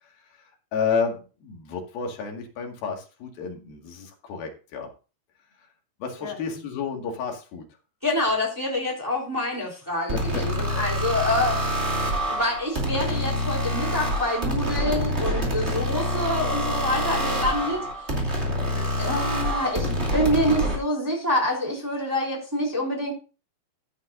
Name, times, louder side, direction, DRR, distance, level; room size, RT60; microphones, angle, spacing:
voice 1, 0.0-4.9 6.0-7.7 10.1-10.4 18.5-18.9, left 5 dB, 70° left, 1 dB, 3.7 m, -31 dB
voice 2, 8.0-11.9 12.3-18.1 19.0-23.1, left 1 dB, 5° right, -2 dB, 3.1 m, -27 dB
sound 1, 10.1-20.8, equal, 20° right, 2.0 m, -26 dB
14.5 x 8.3 x 2.6 m, 0.33 s
omnidirectional pair, 4.4 m